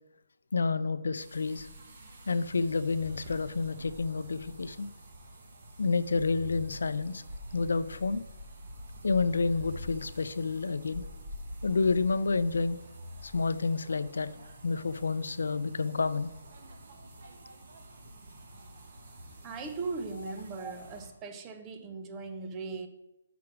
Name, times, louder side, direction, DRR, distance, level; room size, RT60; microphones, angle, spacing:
voice 1, 0.5-1.7 2.3-4.9 5.8-7.2 7.5-8.2 9.0-11.1 11.6-12.8 13.2-14.3 14.6-16.3, left 4 dB, 80° left, 0.4 m, -29 dB
sound 1, 1.2-21.1, equal, 45° right, 1.2 m, -47 dB
voice 2, 19.4-22.9, right 4 dB, 15° right, 0.5 m, -38 dB
6.0 x 4.6 x 6.0 m
hypercardioid pair, 170°, 0 cm